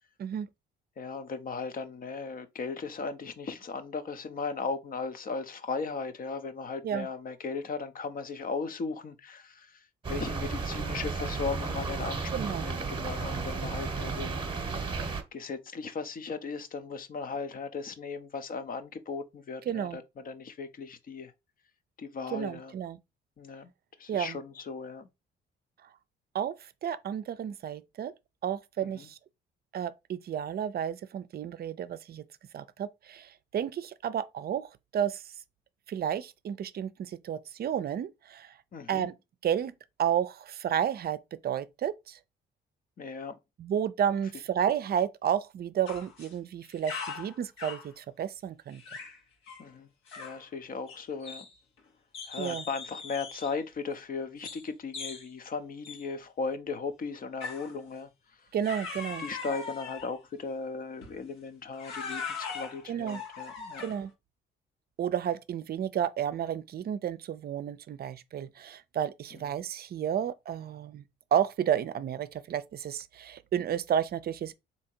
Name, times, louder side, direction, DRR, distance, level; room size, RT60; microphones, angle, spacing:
voice 1, 1.0-9.7 10.1-12.2 12.6-14.4 15.3-21.3 22.0-22.7 23.4-23.7 24.0-25.1 29.0-29.1 38.7-39.1 43.0-43.4 49.6-49.9 50.1-51.4 52.3-58.1 59.2-63.8, left 4 dB, 45° left, 0.7 m, -37 dB
sound 1, 10.0-15.2, right 4 dB, 25° right, 1.0 m, -33 dB
voice 2, 12.3-12.7 19.7-20.0 22.3-23.0 24.1-24.4 26.3-26.5 26.8-28.1 28.4-29.2 29.7-32.2 32.5-35.2 35.9-38.5 38.9-39.1 39.4-39.7 40.0-41.2 41.4-42.2 43.6-48.8 52.4-52.7 58.5-59.3 62.9-63.2 63.8-64.1 65.0-71.0 71.3-74.5, right 9 dB, 50° right, 0.5 m, -31 dB
sound 2, 45.9-46.3 46.6-47.9 48.7-49.2 49.5-49.7 50.1-50.4 50.9-51.8 52.1-53.6 54.4-54.7 54.9-55.3 55.8-56.1 57.4-57.7 58.6-60.2 61.0-61.2 61.7-64.1, left 5 dB, 80° left, 1.3 m, -40 dB
3.7 x 2.9 x 4.4 m
cardioid pair, 90°, 20 cm